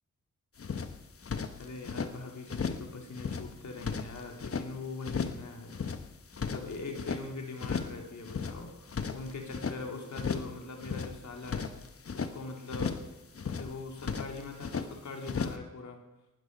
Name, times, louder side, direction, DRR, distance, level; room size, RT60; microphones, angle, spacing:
sound 1, 0.6-2.1 2.5-2.9 3.1-4.7 5.0-5.4 5.7-7.2 7.6-8.0 8.2-9.8 10.1-10.5 10.8-12.3 12.7-13.1 13.3-14.9 15.2-15.6, left 5 dB, 50° left, 1.2 m, -35 dB
voice 1, 1.6-5.7 6.4-11.7 12.1-13.0 13.4-16.0, left 3 dB, 70° left, 2 dB, 3.2 m, -42 dB
19.0 x 11.5 x 5.4 m, 0.95 s
cardioid pair, 55°, 29 cm